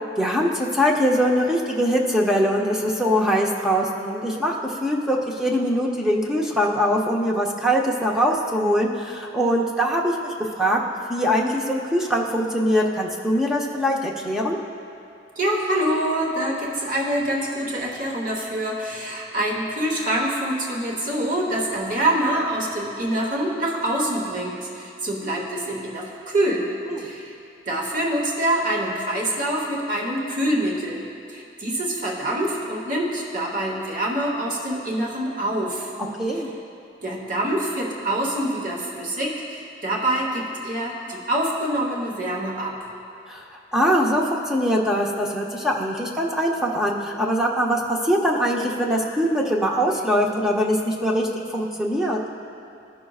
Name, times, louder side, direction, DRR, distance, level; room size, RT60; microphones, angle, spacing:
voice 1, 0.2-10.8 11.1-14.6 26.9-27.1 36.2-36.5 43.3-43.4 43.7-52.2, equal, 5° right, -2 dB, 0.6 m, -22 dB
voice 2, 15.4-26.7 27.0-27.3 27.7-35.9 37.0-42.7, right 1 dB, 45° right, -2 dB, 1.0 m, -25 dB
16.0 x 6.0 x 2.4 m, 2.6 s
head